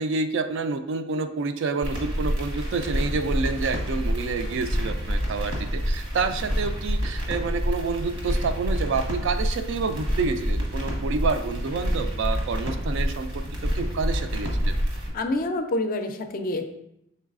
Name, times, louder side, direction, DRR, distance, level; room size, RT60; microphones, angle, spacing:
voice 1, 0.0-14.7, right 4 dB, 60° right, 9 dB, 0.3 m, -28 dB
sound 1, 1.8-15.1, equal, 80° right, 1.2 m, -28 dB
voice 2, 15.1-16.7, left 2 dB, 45° left, 6 dB, 0.4 m, -27 dB
5.4 x 3.9 x 2.4 m, 0.80 s
head